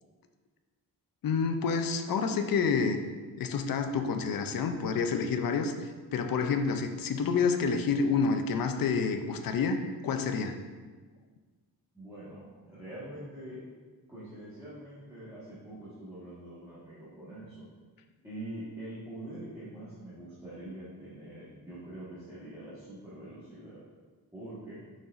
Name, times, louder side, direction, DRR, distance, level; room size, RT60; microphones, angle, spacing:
voice 1, 1.2-3.0 3.4-5.7 6.1-10.6, left 5 dB, 60° left, 7 dB, 0.5 m, -28 dB
voice 2, 11.9-13.6 14.1-17.6 18.2-23.8 24.3-24.8, right 1 dB, 10° right, -12 dB, 1.3 m, -44 dB
6.5 x 5.7 x 2.5 m, 1.4 s
wide cardioid pair, 170°, 39 cm